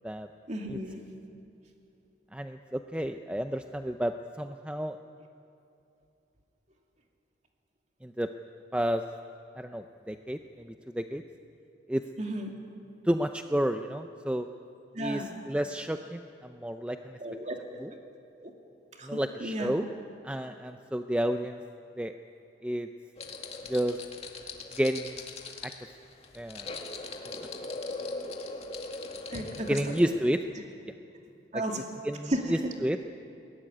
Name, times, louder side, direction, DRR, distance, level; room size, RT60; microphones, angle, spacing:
voice 1, 0.5-1.0 12.2-12.5 14.9-15.3 17.2-17.6 18.4-18.5 19.0-19.7 29.3-29.9 31.5-31.8 32.3-32.6, right 1 dB, 40° right, 2 dB, 2.6 m, -34 dB
voice 2, 2.3-5.0 8.0-8.3 8.7-9.0 9.6-11.2 11.9-12.1 13.0-14.5 15.0-17.2 17.8-17.9 19.0-19.9 20.2-21.6 22.0-22.1 22.6-22.9 23.7-24.0 24.8-25.3 25.6-25.7 26.3-26.8 29.7-30.5 31.5-33.0, equal, 5° right, 7 dB, 0.5 m, -31 dB
sound 1, 23.2-30.2, left 3 dB, 35° left, 2.0 m, -40 dB
21.5 x 18.0 x 9.8 m, 2.8 s
head